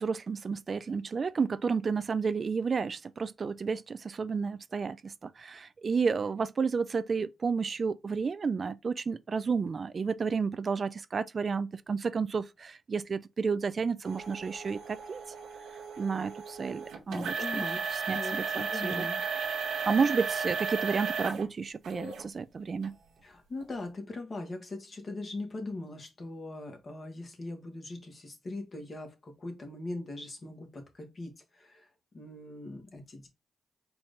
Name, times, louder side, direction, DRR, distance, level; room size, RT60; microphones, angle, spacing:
voice 1, 0.0-15.2 16.0-19.1 19.9-23.0, right 5 dB, 55° right, 0.3 m, -31 dB
sound 1, 14.0-21.4 21.8-22.2 22.8-22.9 23.6-23.7, right 5 dB, 85° right, 0.9 m, -35 dB
voice 2, 17.1-17.9 18.1-19.2 19.7-19.9 23.2-31.9 32.1-33.3, left 2 dB, 50° left, 1.5 m, -40 dB
4.5 x 2.6 x 3.5 m
supercardioid pair, 45°, 0 cm